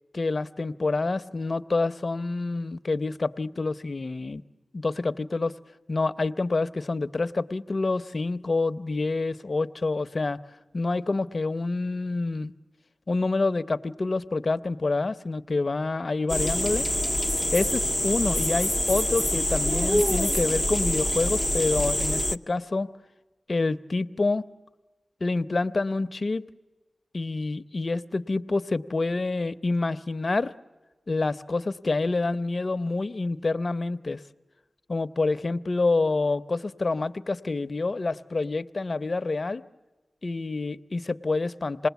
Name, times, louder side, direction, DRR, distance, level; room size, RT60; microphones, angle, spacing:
voice 1, 0.1-4.4 4.7-5.6 5.9-10.4 10.7-12.5 13.1-16.9 17.5-22.9 23.5-24.5 25.2-26.5 27.1-30.5 31.1-34.2 34.9-39.6 40.2-41.9, left 3 dB, 55° left, 12 dB, 0.8 m, -27 dB
sound 1, 16.3-22.4, left 1 dB, 5° left, 0.7 m, -25 dB
27.5 x 20.0 x 8.2 m, 1.3 s
cardioid pair, 50°, 0 cm